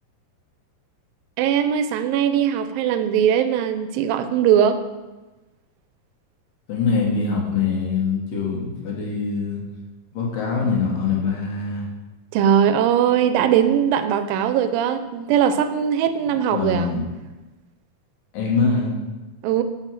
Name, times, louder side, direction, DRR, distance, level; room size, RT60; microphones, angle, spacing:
voice 1, 1.4-4.8 12.3-16.9 19.4-19.6, right 9 dB, 85° right, 10 dB, 2.3 m, -20 dB
voice 2, 6.7-9.6 10.1-11.9 16.5-17.0 18.3-18.9, left 4 dB, 75° left, -3 dB, 3.0 m, -23 dB
6.8 x 4.7 x 5.8 m, 1.1 s
omnidirectional pair, 4.0 m